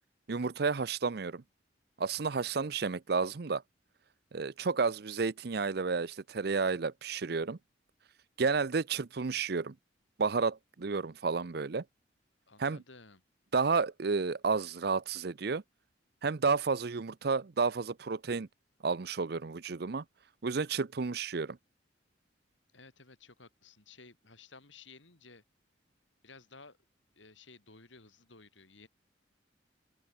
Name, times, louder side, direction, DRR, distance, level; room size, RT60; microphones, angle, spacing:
voice 1, 0.3-1.4 2.0-3.6 4.3-7.6 8.4-9.7 10.2-11.8 12.6-12.8 13.5-15.6 16.2-18.5 18.8-20.0 20.4-21.6, right 4 dB, 60° right, 0.6 m, -31 dB
voice 2, 12.5-13.2 22.7-25.4 26.2-26.8 27.1-28.9, left 4 dB, 90° left, 5.8 m, -55 dB
open air
head